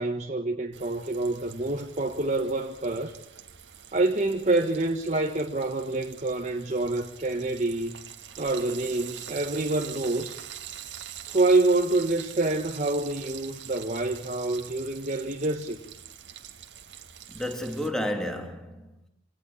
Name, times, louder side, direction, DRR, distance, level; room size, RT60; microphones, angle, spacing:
voice 1, 0.0-3.1 3.9-8.0 8.4-10.4 11.3-15.8, right 2 dB, 40° right, 1.6 m, -27 dB
Frying (food), 0.7-17.9, right 10 dB, 70° right, 1.9 m, -44 dB
voice 2, 17.3-19.1, left 1 dB, 5° left, 3.0 m, -32 dB
27.0 x 18.0 x 7.3 m
head